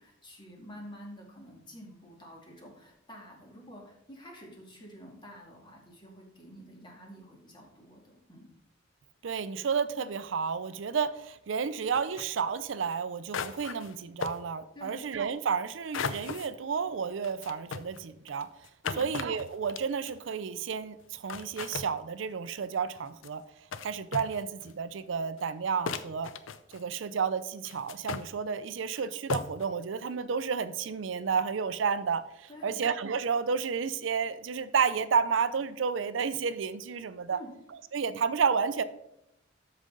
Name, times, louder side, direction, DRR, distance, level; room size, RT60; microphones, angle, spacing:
voice 1, 0.0-8.5 14.7-15.0 18.8-19.1 32.5-32.8 37.3-37.5, equal, 25° left, 0 dB, 2.1 m, -49 dB
voice 2, 9.2-18.5 19.0-23.4 23.8-26.3 26.7-37.4 37.9-38.8, right 6 dB, 75° right, 13 dB, 0.5 m, -31 dB
sound 1, 11.9-12.3 12.9-13.0 13.3-13.9 14.2-14.4 15.9-16.5 17.2-20.2 21.0-21.1 21.3-21.9 23.0-23.3 23.7-23.9 24.1-24.7 25.4-25.5 25.9-26.9 27.6-28.3 28.9-29.0 29.3-29.7, left 5 dB, 90° left, 0.6 m, -36 dB
12.5 x 5.1 x 3.8 m, 0.82 s
head